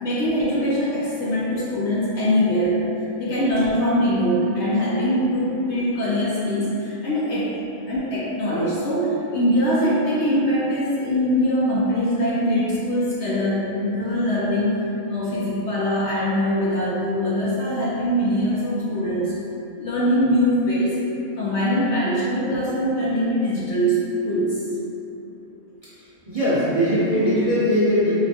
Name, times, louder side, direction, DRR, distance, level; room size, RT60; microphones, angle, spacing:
voice 1, 0.0-2.8 3.2-7.5 7.9-14.8 15.1-19.3 19.8-21.0 21.4-24.6, equal, 65° left, -7 dB, 0.7 m, -22 dB
voice 2, 26.3-28.1, equal, 30° right, -13 dB, 0.7 m, -20 dB
5.0 x 2.2 x 2.7 m, 2.9 s
omnidirectional pair, 1.5 m